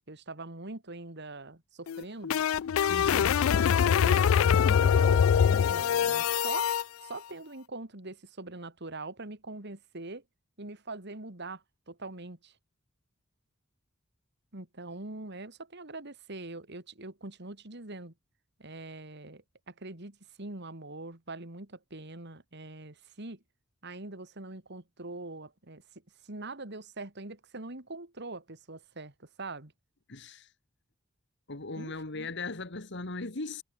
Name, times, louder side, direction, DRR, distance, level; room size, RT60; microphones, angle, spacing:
voice 1, 0.1-2.4 3.1-6.7 7.0-10.2 10.6-12.5 14.5-18.1 18.6-23.4 23.8-25.8 26.2-29.7 31.8-32.3, right 2 dB, 55° right, 3.1 m, -43 dB
sound 1, 1.9-6.8, left 8 dB, 85° left, 0.4 m, -24 dB
voice 2, 2.9-3.3 30.1-30.5 31.5-33.6, left 3 dB, 60° left, 2.0 m, -38 dB
head